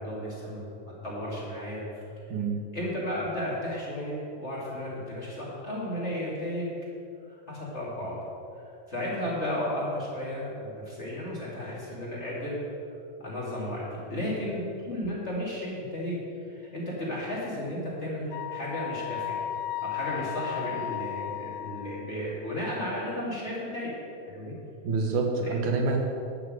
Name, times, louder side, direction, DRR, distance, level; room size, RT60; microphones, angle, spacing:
voice 1, 0.0-1.8 2.7-6.7 7.3-8.2 8.9-12.6 13.2-19.4 19.8-23.9 24.3-24.5 25.4-25.5, left 1 dB, 25° left, -6 dB, 2.4 m, -34 dB
voice 2, 2.3-2.6 24.8-26.0, right 4 dB, 90° right, 2 dB, 2.7 m, -27 dB
Wind instrument woodwind instrument, 18.3-22.2, left 12 dB, 80° left, 1.6 m, -35 dB
11.0 x 6.3 x 7.6 m, 2.6 s
omnidirectional pair, 3.4 m